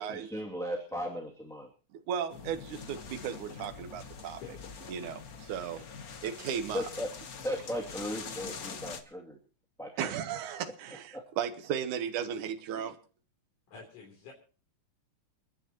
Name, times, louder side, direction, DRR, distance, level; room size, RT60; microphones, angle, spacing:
voice 1, 0.0-1.7 6.7-7.1 7.4-9.4 9.8-10.1 11.1-11.2, equal, ahead, 0 dB, 2.0 m, -36 dB
voice 2, 2.1-4.4 4.9-5.8 6.2-6.9 10.0-12.9, right 8 dB, 80° right, 9 dB, 2.6 m, -35 dB
sound 1, 2.3-9.0, left 5 dB, 60° left, 0.9 m, -44 dB
voice 3, 13.7-14.3, left 6 dB, 80° left, -1 dB, 4.9 m, -48 dB
29.5 x 10.5 x 3.0 m, 0.39 s
omnidirectional pair, 3.5 m